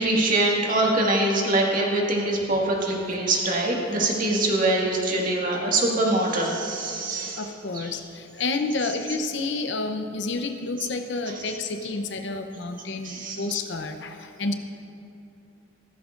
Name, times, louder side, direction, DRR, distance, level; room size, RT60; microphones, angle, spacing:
voice 1, 0.0-7.4 7.7-7.9 11.5-11.6 13.0-13.6, right 2 dB, 45° right, -2 dB, 1.8 m, -24 dB
voice 2, 7.4-14.5, left 3 dB, 65° left, 6 dB, 0.7 m, -30 dB
15.0 x 14.0 x 2.5 m, 2.9 s
head